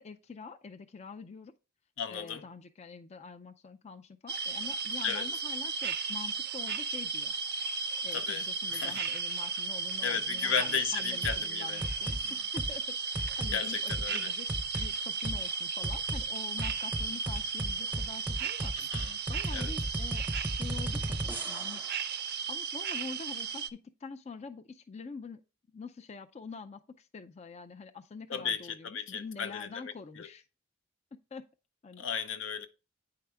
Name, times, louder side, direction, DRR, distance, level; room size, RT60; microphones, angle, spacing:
voice 1, 0.0-1.5 2.1-7.3 8.0-14.5 14.7-21.8 22.5-25.4 25.7-30.4 31.1-31.4 31.8-32.1, left 4 dB, 35° left, 0.4 m, -46 dB
voice 2, 2.0-2.4 5.0-5.3 8.1-8.4 8.7-9.0 10.0-11.8 12.2-12.3 13.5-14.3 18.8-19.2 19.5-19.7 28.3-30.3 32.0-32.7, left 7 dB, 70° left, 0.7 m, -34 dB
sound 1, 4.3-23.7, right 5 dB, 55° right, 0.5 m, -35 dB
sound 2, 11.2-11.4 11.8-12.2 12.6-12.8 13.1-13.5 13.9-14.0 14.5-14.9 15.2-15.4 15.8-16.2 16.6-21.9, right 1 dB, 10° right, 0.6 m, -35 dB
9.5 x 4.8 x 3.4 m
head